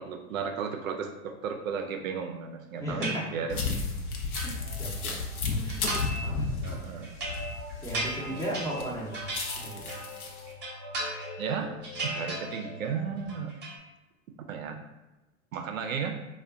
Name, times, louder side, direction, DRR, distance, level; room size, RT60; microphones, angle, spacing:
voice 1, 0.0-3.7 6.6-7.1 8.3-8.6 11.4-11.7 12.0-13.5 14.5-14.8 15.5-16.2, right 6 dB, 70° right, 4 dB, 0.5 m, -34 dB
voice 2, 2.8-3.2 4.4-4.5 4.8-5.2 5.5-6.6 6.9-7.0 7.8-10.0, right 1 dB, 5° left, -6 dB, 0.6 m, -36 dB
sound 1, 3.0-3.7 4.1-5.2 5.7-6.3 6.6-10.1 10.5-11.5 11.8-12.9 13.2-13.8, right 2 dB, 25° right, 0.8 m, -37 dB
sound 2, 3.5-8.5 8.8-10.4, left 4 dB, 85° left, 0.6 m, -33 dB
sound 3, 4.6-13.3, left 1 dB, 45° left, 0.9 m, -44 dB
2.3 x 2.2 x 3.6 m, 1.0 s
figure-of-eight pair, 90°, 42 cm